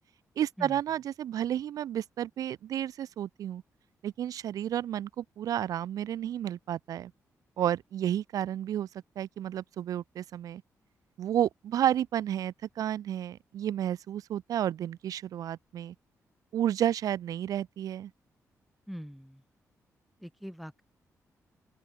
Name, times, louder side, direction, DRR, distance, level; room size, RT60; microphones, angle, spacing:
voice 1, 0.4-3.6 4.0-7.1 7.6-8.9 9.2-10.6 11.2-15.9 16.5-18.1, right 11 dB, 85° right, 0.8 m, -31 dB
voice 2, 18.9-19.4 20.2-20.8, equal, ahead, 3.4 m, -42 dB
open air
wide cardioid pair, 155°, 6 cm